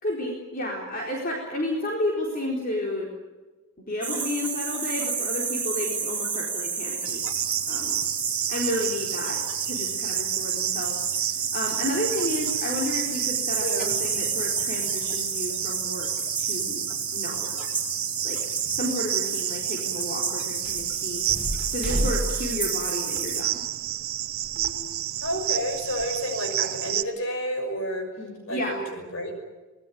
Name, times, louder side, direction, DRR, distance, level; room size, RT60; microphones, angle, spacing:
voice 1, 0.0-3.1 3.8-7.3 7.7-8.0 8.5-16.1 16.4-16.8 17.1-17.6 18.2-18.4 18.7-21.2 21.7-23.6 28.2-28.8, left 1 dB, 40° left, -1 dB, 4.3 m, -32 dB
sound 1, 4.0-23.4, right 5 dB, 10° right, 5.0 m, -30 dB
Cricket, 7.1-27.0, right 13 dB, 75° right, 1.0 m, -31 dB
sound 2, 20.6-24.1 24.4-26.1, equal, 35° right, 5.2 m, -32 dB
voice 2, 25.2-28.1 28.5-29.4, equal, 65° left, 5 dB, 6.2 m, -30 dB
25.0 x 20.5 x 9.4 m, 1.2 s
head